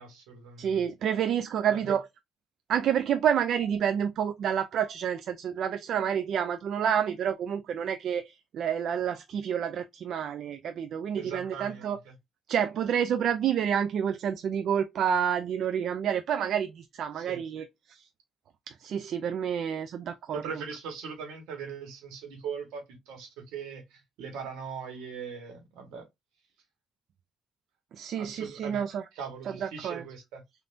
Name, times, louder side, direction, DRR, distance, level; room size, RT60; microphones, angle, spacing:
voice 1, 0.0-0.8 1.7-2.0 11.2-12.1 17.1-17.4 20.3-26.1 28.1-28.8 29.1-30.4, right 6 dB, 90° right, 1.2 m, -40 dB
voice 2, 0.6-2.0 2.7-12.0 12.5-18.1 18.7-20.4 27.9-29.0 29.6-30.0, right 8 dB, 70° right, 0.3 m, -29 dB
3.4 x 2.5 x 2.5 m
supercardioid pair, 65°, 0 cm